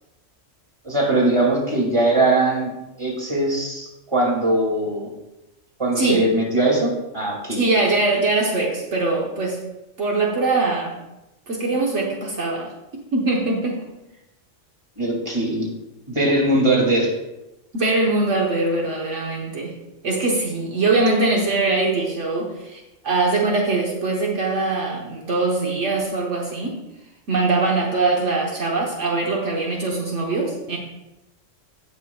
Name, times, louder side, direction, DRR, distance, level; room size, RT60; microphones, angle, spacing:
voice 1, 0.8-2.7 3.0-5.1 5.8-7.6 15.0-15.7 16.1-17.1, right 2 dB, 25° right, -2 dB, 2.4 m, -20 dB
voice 2, 6.0-6.3 7.5-9.6 10.0-11.0 11.5-13.8 17.7-19.7 20.0-26.8 27.3-30.8, right 3 dB, 70° right, -2 dB, 1.5 m, -22 dB
17.0 x 6.1 x 2.3 m, 0.98 s
omnidirectional pair, 1.3 m